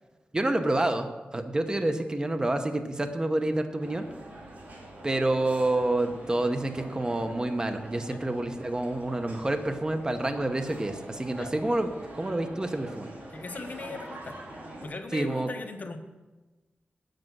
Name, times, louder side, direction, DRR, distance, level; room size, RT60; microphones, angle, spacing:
voice 1, 0.3-4.0 5.0-11.9 12.1-13.1 15.1-15.5, right 2 dB, 25° right, 7 dB, 0.9 m, -28 dB
sound 1, 3.8-14.9, right 1 dB, 55° right, 2.5 m, -44 dB
voice 2, 13.3-14.4 14.8-16.0, left 3 dB, 50° left, 6 dB, 1.1 m, -39 dB
9.1 x 7.7 x 6.1 m, 1.2 s
wide cardioid pair, 90°, 3 cm